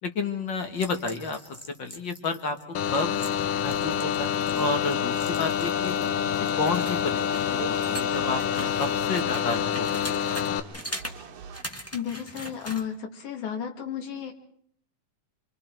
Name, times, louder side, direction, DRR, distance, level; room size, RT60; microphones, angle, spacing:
voice 1, 0.0-1.4 1.8-2.6 2.9-3.2 3.6-5.9 6.3-10.2 10.5-10.8, left 3 dB, 45° left, 7 dB, 1.6 m, -31 dB
sound 1, 0.8-6.1 6.4-10.5 10.7-11.2 11.5-12.9, equal, 10° left, 0.6 m, -41 dB
sound 2, 2.8-10.6, left 8 dB, 85° left, 2.7 m, -27 dB
sound 3, 6.6-11.6, right 6 dB, 60° right, 2.2 m, -44 dB
voice 2, 11.9-14.3, left 8 dB, 65° left, 4 dB, 3.2 m, -33 dB
27.5 x 24.5 x 4.5 m, 0.64 s
omnidirectional pair, 3.7 m